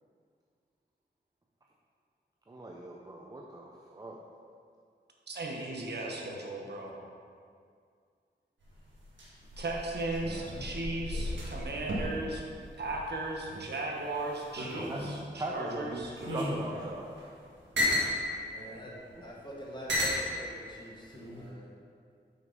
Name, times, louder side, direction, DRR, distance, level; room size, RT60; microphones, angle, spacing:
voice 1, 2.5-4.2 14.9-15.0 15.3-16.0 16.3-17.1, right 2 dB, 20° right, -1 dB, 0.6 m, -40 dB
voice 2, 5.3-7.0 9.6-12.5 12.8-16.1 18.6-18.8, right 2 dB, 65° right, -1 dB, 1.1 m, -36 dB
sound 1, 8.6-13.7 14.0-15.3 15.9-18.1 19.0-19.1 19.9-20.3 21.1-21.5, left 1 dB, 85° right, 1.6 m, -34 dB
voice 3, 18.5-18.9 19.2-21.8, right 1 dB, 25° left, -4 dB, 1.6 m, -44 dB
6.3 x 5.8 x 5.2 m, 2.2 s
wide cardioid pair, 120°, 19 cm